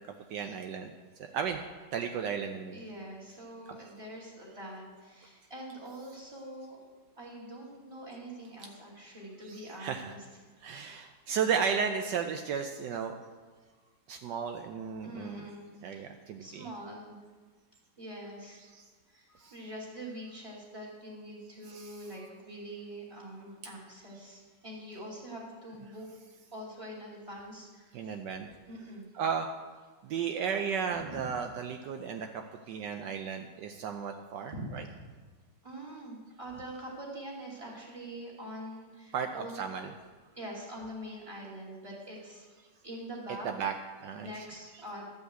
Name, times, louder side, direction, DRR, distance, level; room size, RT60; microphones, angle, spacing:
voice 1, 0.3-0.9 1.3-1.6 1.9-2.8 3.7-3.8 8.6-8.7 9.4-10.2 10.6-13.1 14.1-15.5 15.8-16.7 18.6-18.9 19.4-19.5 21.6-22.1 23.6-23.7 25.7-25.9 27.9-28.5 28.8-28.9 29.1-29.5 30.0-34.8 36.5-36.7 39.1-40.0 43.3-43.8 44.0-44.5 44.7-44.9, right 6 dB, 75° right, 5 dB, 1.3 m, -34 dB
voice 2, 2.7-6.8 7.2-10.2 11.0-11.1 13.8-13.9 15.0-16.1 16.4-17.2 18.0-18.6 19.1-26.1 26.5-28.1 28.7-29.1 31.1-31.2 34.5-34.9 35.6-39.6 40.3-42.6 42.8-43.5 44.1-45.1, right 1 dB, 15° right, -3 dB, 2.6 m, -44 dB
12.0 x 5.5 x 7.9 m, 1.4 s
omnidirectional pair, 2.0 m